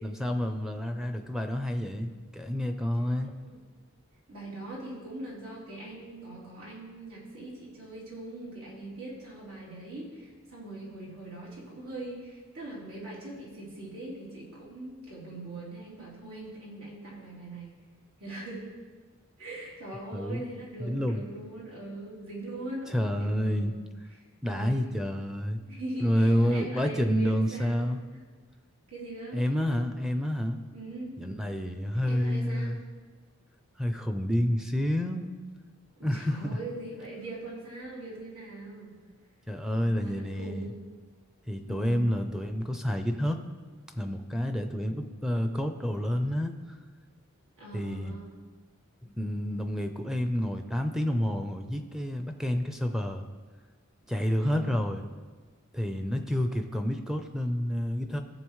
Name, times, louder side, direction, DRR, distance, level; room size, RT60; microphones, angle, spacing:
voice 1, 0.0-3.3 20.1-20.4 20.8-21.2 22.9-23.7 24.4-25.6 26.0-28.0 29.3-30.6 31.2-32.8 33.8-35.3 36.0-36.6 39.5-40.7 41.5-43.4 43.9-46.6 47.7-48.1 49.0-53.2 54.1-55.0 55.7-58.2, equal, ahead, 5 dB, 0.5 m, -29 dB
voice 2, 4.3-17.8 18.2-18.6 19.4-23.8 24.4-25.0 25.7-28.2 28.9-29.4 30.7-31.2 32.0-32.8 36.0-38.9 39.7-40.8 41.6-42.0 47.6-48.3 54.4-54.7, right 2 dB, 80° right, -6 dB, 3.5 m, -41 dB
16.5 x 7.0 x 3.1 m, 1.4 s
head